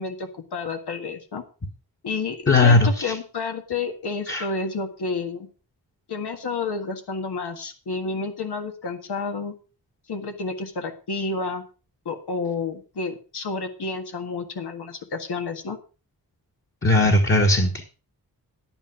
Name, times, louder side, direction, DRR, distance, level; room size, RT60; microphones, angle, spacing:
voice 1, 0.0-1.4 2.0-5.5 6.1-9.5 10.1-11.6 12.0-15.8, left 4 dB, 85° left, 6 dB, 1.7 m, -30 dB
voice 2, 2.5-3.2 4.3-4.4 16.8-17.8, left 2 dB, 30° left, 2 dB, 1.5 m, -18 dB
10.5 x 8.9 x 4.9 m, 0.34 s
wide cardioid pair, 110°, 39 cm